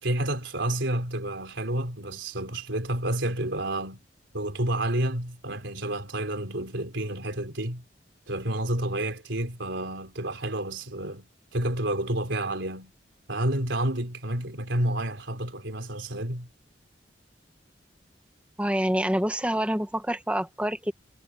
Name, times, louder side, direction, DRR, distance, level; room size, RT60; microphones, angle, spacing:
voice 1, 0.0-4.0 4.3-7.8 8.3-11.2 11.5-12.9 13.3-16.5, right 1 dB, 85° right, 3.8 m, -30 dB
voice 2, 18.6-20.9, equal, 5° right, 1.4 m, -26 dB
head